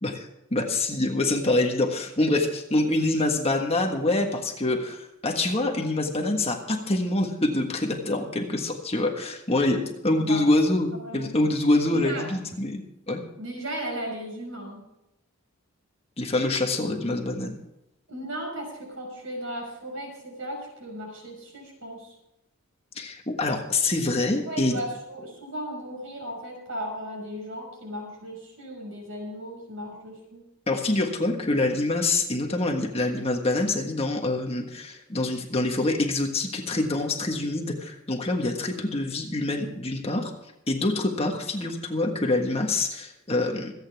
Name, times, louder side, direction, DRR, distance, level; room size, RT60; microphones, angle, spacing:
voice 1, 0.0-13.2 16.2-17.5 22.9-24.8 30.7-40.3 40.7-43.7, left 2 dB, 30° left, 3 dB, 1.5 m, -25 dB
voice 2, 10.9-11.3 11.9-12.3 13.4-14.8 18.1-22.1 24.5-30.4, equal, 65° right, 1 dB, 6.1 m, -36 dB
26.5 x 9.1 x 3.5 m, 0.87 s
head